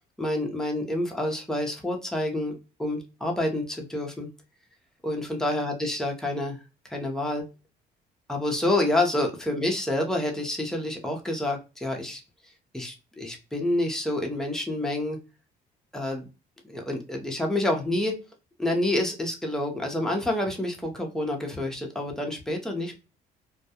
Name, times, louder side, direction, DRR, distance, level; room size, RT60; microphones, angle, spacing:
voice 1, 0.2-4.3 5.0-6.6 6.9-7.4 8.3-12.2 12.7-15.2 15.9-16.3 16.6-18.2 18.6-23.0, left 1 dB, 5° left, 1 dB, 0.7 m, -28 dB
2.3 x 2.2 x 2.7 m, 0.30 s
cardioid pair, 110°, 17 cm